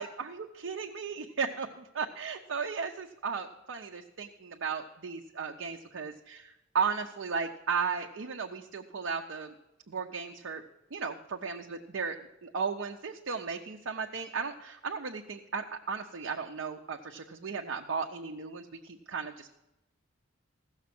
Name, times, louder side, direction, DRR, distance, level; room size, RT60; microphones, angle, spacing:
voice 1, 0.0-9.5 9.9-10.6 10.9-12.2 12.4-19.5, right 5 dB, 75° right, 3 dB, 0.7 m, -35 dB
15.5 x 6.5 x 6.0 m, 0.94 s
head